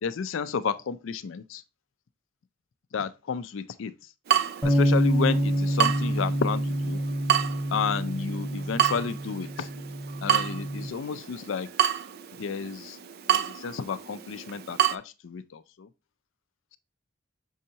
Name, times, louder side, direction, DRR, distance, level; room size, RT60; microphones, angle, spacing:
voice 1, 0.0-1.6 2.9-3.9 4.6-7.0 7.7-9.7 10.2-11.7 12.4-13.0 13.3-15.9, left 6 dB, 65° left, 0.4 m, -31 dB
Water tap faucet / Drip, 4.3-15.0, right 10 dB, 50° right, 0.4 m, -30 dB
sound 1, 4.6-10.9, right 1 dB, 5° right, 1.4 m, -27 dB
6.4 x 5.4 x 2.8 m
head